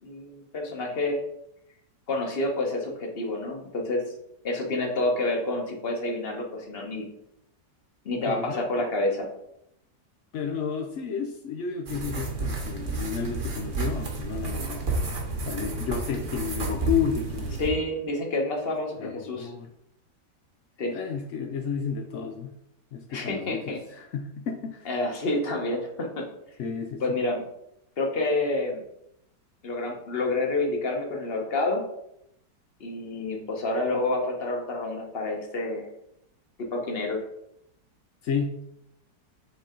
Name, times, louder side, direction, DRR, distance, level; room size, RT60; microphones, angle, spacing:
voice 1, 0.0-1.2 2.1-4.0 4.4-7.1 8.0-9.3 17.6-19.5 20.8-20.9 23.1-23.8 24.8-26.2 27.0-27.4 28.0-28.8 29.6-31.8 32.8-35.9 36.7-37.2, left 2 dB, 40° left, 1 dB, 1.1 m, -28 dB
voice 2, 8.3-8.6 10.3-14.8 15.5-17.6 19.0-19.7 20.9-22.5 22.9-24.9 26.6-27.2 38.2-38.6, left 6 dB, 70° left, 2 dB, 0.7 m, -32 dB
sound 1, 11.9-17.7, right 3 dB, 45° right, 1.5 m, -31 dB
7.3 x 3.9 x 3.7 m, 0.79 s
omnidirectional pair, 1.9 m